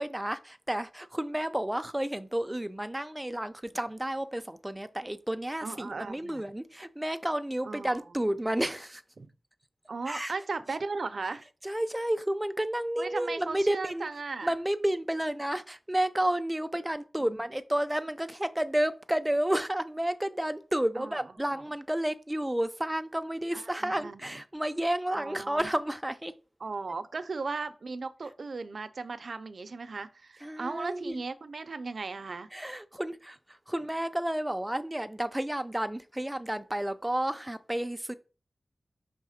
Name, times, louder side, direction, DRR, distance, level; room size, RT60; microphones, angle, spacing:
voice 1, 0.0-9.0 10.1-10.3 11.6-14.1 14.4-26.3 30.4-31.2 32.5-38.1, right 1 dB, 10° right, 0.4 m, -31 dB
voice 2, 5.6-6.5 7.7-8.3 9.2-9.3 9.9-11.4 13.0-14.5 17.2-17.4 21.0-21.2 21.5-21.6 23.7-24.2 25.1-25.7 26.6-32.5, right 4 dB, 70° right, 0.5 m, -37 dB
5.6 x 3.4 x 4.9 m
wide cardioid pair, 100°, 0 cm